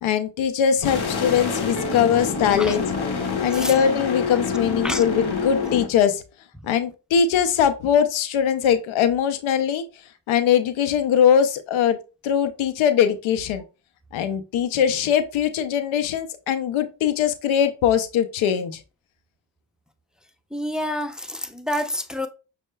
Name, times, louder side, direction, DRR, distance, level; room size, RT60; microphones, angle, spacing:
voice 1, 0.0-2.9 3.4-6.2 6.6-9.8 10.3-12.0 12.2-13.6 14.1-18.8, left 8 dB, 85° left, 0.5 m, -21 dB
sound 1, 0.8-5.9, left 4 dB, 55° left, 1.0 m, -26 dB
sound 2, 1.8-3.8, right 2 dB, 40° left, 1.9 m, -40 dB
voice 2, 20.5-22.3, left 1 dB, ahead, 0.5 m, -28 dB
6.2 x 2.1 x 2.2 m
supercardioid pair, 45°, 47 cm